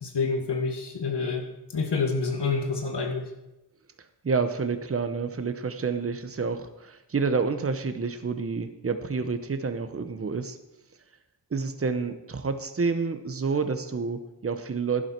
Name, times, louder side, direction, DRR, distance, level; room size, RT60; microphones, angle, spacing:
voice 1, 0.0-1.5 1.7-3.3, left 4 dB, 90° left, 3 dB, 2.0 m, -28 dB
voice 2, 4.2-10.6 11.5-15.0, right 4 dB, 35° right, 9 dB, 0.9 m, -29 dB
11.5 x 11.5 x 4.5 m, 0.93 s
wide cardioid pair, 120°, 40 cm